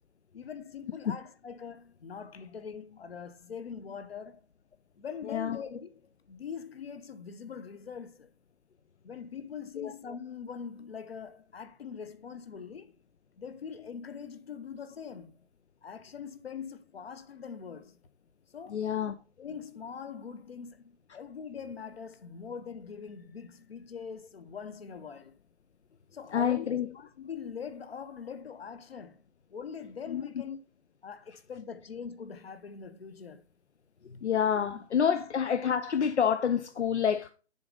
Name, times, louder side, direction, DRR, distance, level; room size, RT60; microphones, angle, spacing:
voice 1, 0.3-4.4 5.0-5.9 6.3-8.3 9.0-12.9 13.4-15.4 15.8-18.0 18.5-18.8 19.4-25.4 26.1-29.2 29.5-30.6 31.0-33.4 34.7-35.2, left 6 dB, 60° left, 1.0 m, -42 dB
voice 2, 5.2-5.6 9.8-9.9 18.7-19.2 26.3-26.9 30.1-30.2 34.0-37.3, left 8 dB, 80° left, 0.6 m, -28 dB
6.7 x 4.0 x 5.2 m
figure-of-eight pair, 150°, 33 cm